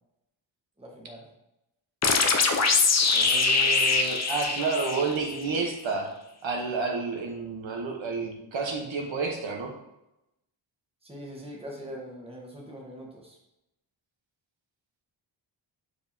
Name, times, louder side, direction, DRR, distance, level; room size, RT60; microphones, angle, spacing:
voice 1, 0.8-1.3 11.0-13.4, equal, 10° right, -2 dB, 1.3 m, -42 dB
sound 1, 2.0-5.5, left 4 dB, 35° left, 0.6 m, -23 dB
voice 2, 3.1-6.1 6.4-9.7, right 4 dB, 70° right, 2 dB, 1.1 m, -30 dB
6.9 x 5.0 x 2.7 m, 0.88 s
wide cardioid pair, 165°, 47 cm